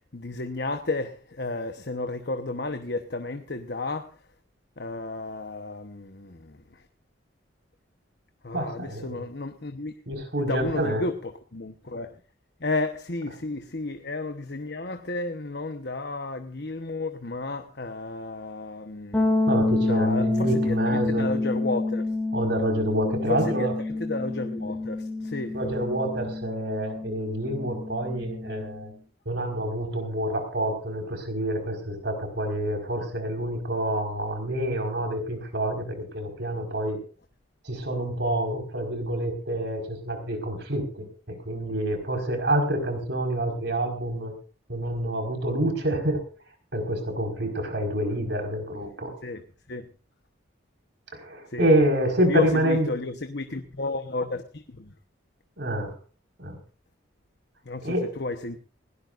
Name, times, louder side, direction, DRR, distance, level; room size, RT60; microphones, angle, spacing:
voice 1, 0.0-4.2 4.8-6.8 8.4-9.9 10.4-12.2 12.6-19.4 19.7-22.1 23.3-23.7 23.9-25.6 49.2-49.4 49.7-49.8 51.5-51.7 52.3-54.9 57.6-58.6, left 2 dB, 55° left, 1.1 m, -32 dB
voice 2, 8.5-9.2 10.1-11.0 19.5-21.3 22.3-23.7 25.5-28.9 29.2-37.0 37.6-44.3 44.7-46.2 46.7-49.1 51.1-52.9 55.6-56.0 56.4-56.6 57.8-58.1, right 1 dB, 60° right, 5.0 m, -27 dB
sound 1, 19.1-28.8, left 2 dB, 10° left, 3.2 m, -28 dB
20.0 x 18.0 x 2.6 m
head